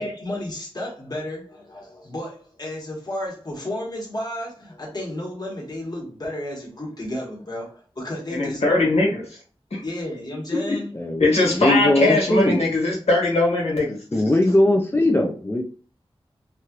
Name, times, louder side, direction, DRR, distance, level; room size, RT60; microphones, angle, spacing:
voice 1, 0.0-8.9 9.8-10.9, left 1 dB, 40° left, -2 dB, 1.3 m, -32 dB
voice 2, 8.3-9.2 9.7-9.8 11.2-14.0, left 2 dB, 90° left, -4 dB, 1.5 m, -20 dB
voice 3, 10.9-12.7 14.1-15.6, left 1 dB, 20° left, 3 dB, 0.4 m, -20 dB
3.0 x 2.5 x 2.9 m, 0.39 s
wide cardioid pair, 70°, 10 cm